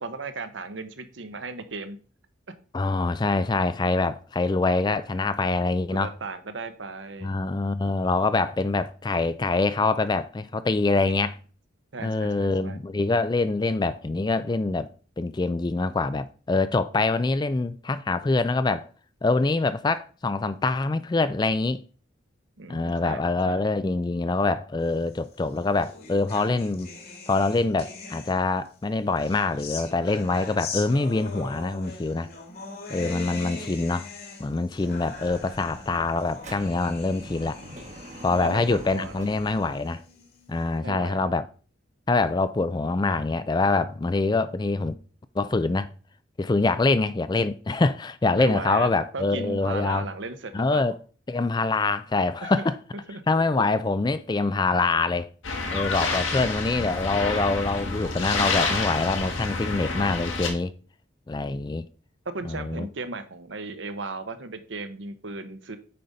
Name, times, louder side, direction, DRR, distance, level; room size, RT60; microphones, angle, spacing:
voice 1, 0.0-2.0 5.9-7.3 11.9-12.8 22.6-23.6 33.3-33.8 38.3-39.2 40.8-41.3 48.3-48.9 49.1-50.8 52.4-52.7 53.1-53.2 53.6-53.7 62.3-65.8, right 3 dB, 65° right, 0.9 m, -36 dB
voice 2, 2.7-6.1 7.2-11.4 12.0-14.9 15.2-18.9 19.2-21.8 22.7-26.9 27.3-32.3 32.9-34.1 34.4-37.6 38.2-40.0 40.5-41.5 42.1-44.9 45.4-45.9 46.4-50.1 50.5-51.0 51.3-52.8 53.3-55.3 55.7-60.7 61.3-61.9 62.4-62.9, left 3 dB, 20° left, 0.3 m, -25 dB
sound 1, 25.2-28.7 29.2-40.6, left 3 dB, 50° left, 1.8 m, -41 dB
Dog / Motorcycle, 34.8-39.7, right 1 dB, 35° right, 1.0 m, -45 dB
sound 2, 55.4-60.5, left 3 dB, 80° left, 1.8 m, -28 dB
8.6 x 5.1 x 4.0 m
head